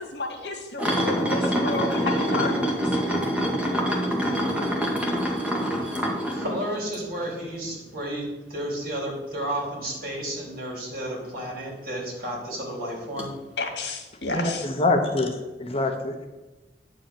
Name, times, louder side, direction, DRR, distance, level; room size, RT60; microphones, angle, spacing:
voice 1, 0.0-3.0 13.6-14.7, left 3 dB, 75° left, 2 dB, 2.0 m, -31 dB
sound 1, 0.8-7.3 7.7-7.9 11.4-11.5 13.2-13.3, equal, 5° right, 1.7 m, -25 dB
voice 2, 6.3-13.4, right 1 dB, 55° right, -2 dB, 3.9 m, -32 dB
voice 3, 14.3-16.3, left 2 dB, 35° left, 4 dB, 1.0 m, -25 dB
10.0 x 4.9 x 7.6 m, 1.1 s
head